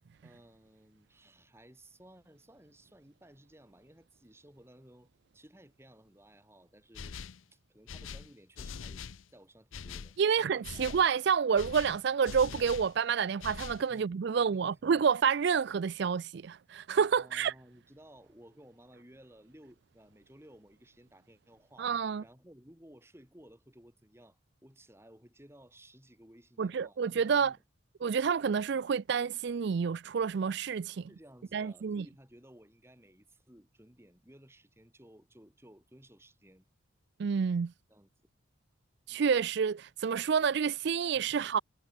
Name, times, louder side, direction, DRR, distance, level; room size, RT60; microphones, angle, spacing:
voice 1, 0.2-7.2 7.5-9.0 9.3-10.9 13.9-14.8 17.2-27.6 31.1-36.7 37.9-38.1 41.2-41.5, right 1 dB, 10° right, 3.6 m, -57 dB
sound 1, 6.9-7.4 7.9-9.2 9.7-10.2 10.6-11.1 11.6-12.9 13.4-13.9, left 6 dB, 75° left, 0.6 m, -43 dB
voice 2, 10.2-17.5 21.8-22.2 26.6-27.6 28.0-31.1 31.5-32.0 37.2-37.7 39.1-41.6, right 6 dB, 55° right, 0.4 m, -29 dB
head